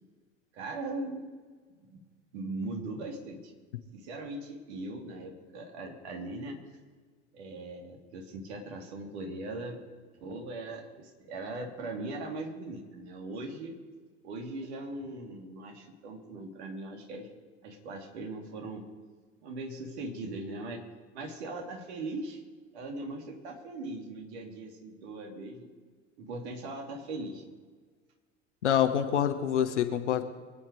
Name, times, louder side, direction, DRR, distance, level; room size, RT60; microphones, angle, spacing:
voice 1, 0.5-1.3 1.9-2.0 2.3-3.5 3.9-6.6 7.3-9.8 10.2-13.7 14.2-17.3 17.6-18.8 19.4-20.8 21.1-22.4 22.7-25.7 26.2-27.4, right 2 dB, 65° right, 2 dB, 2.8 m, -39 dB
voice 2, 28.6-30.2, left 9 dB, 70° left, 7 dB, 1.2 m, -26 dB
24.5 x 9.1 x 4.7 m, 1.5 s
figure-of-eight pair, 65°, 36 cm